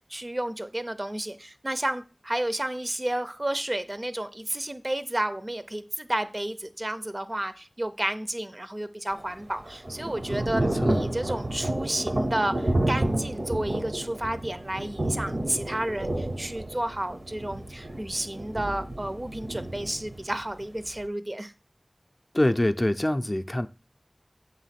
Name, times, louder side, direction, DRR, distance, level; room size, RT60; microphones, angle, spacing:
voice 1, 0.1-21.5, right 1 dB, 45° right, 0.5 m, -31 dB
Thunder / Rain, 9.1-21.1, right 1 dB, 70° right, 0.9 m, -30 dB
voice 2, 10.5-11.0 22.3-23.7, left 1 dB, 35° left, 0.4 m, -25 dB
7.4 x 3.0 x 5.8 m
wide cardioid pair, 45°, 0 cm